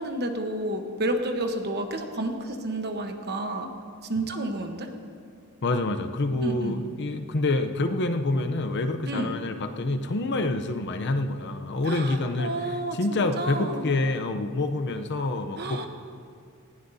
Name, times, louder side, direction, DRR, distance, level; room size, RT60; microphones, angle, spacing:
voice 1, 0.0-3.7 4.1-4.9 6.4-6.8 9.1-9.4 11.8-13.9 15.6-15.9, right 1 dB, 50° right, 5 dB, 1.1 m, -30 dB
voice 2, 5.6-15.9, left 2 dB, 55° left, 7 dB, 0.7 m, -27 dB
19.5 x 15.5 x 2.8 m, 2.3 s
head